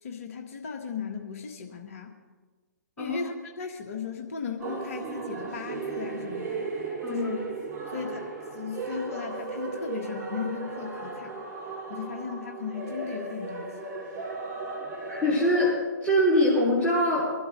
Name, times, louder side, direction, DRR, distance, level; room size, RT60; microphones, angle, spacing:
voice 1, 0.0-2.1 3.0-6.7 7.1-7.4 7.9-11.5 11.9-13.8, left 6 dB, 45° left, 3 dB, 1.7 m, -36 dB
sound 1, 4.6-15.7, right 4 dB, 25° right, 4.8 m, -36 dB
voice 2, 15.1-17.2, left 1 dB, 15° left, -9 dB, 4.9 m, -23 dB
24.0 x 12.5 x 3.3 m, 1.4 s
figure-of-eight pair, 120°, 10 cm